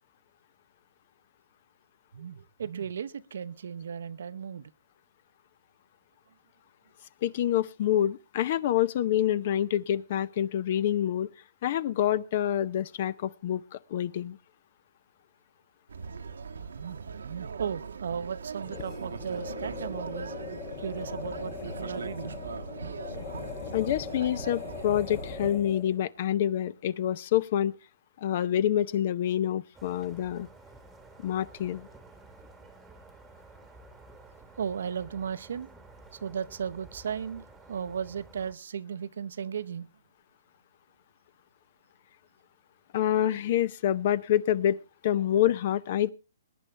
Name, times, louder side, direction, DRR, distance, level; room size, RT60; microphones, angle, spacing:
voice 1, 2.1-4.7 16.7-20.3 20.8-22.3 34.6-35.7 36.1-39.9, right 7 dB, 70° right, 14 dB, 0.7 m, -36 dB
voice 2, 7.2-11.3 11.6-14.4 23.7-27.8 28.2-30.5 31.2-31.9 42.9-46.1, left 11 dB, 45° left, 21 dB, 0.6 m, -27 dB
sound 1, 15.9-25.5, right 5 dB, 85° right, 1.1 m, -40 dB
sound 2, 18.6-26.0, left 7 dB, 25° left, 1.0 m, -41 dB
sound 3, 29.7-38.5, right 3 dB, 5° right, 1.3 m, -52 dB
21.5 x 10.0 x 3.3 m, 0.29 s
hypercardioid pair, 155°, 0 cm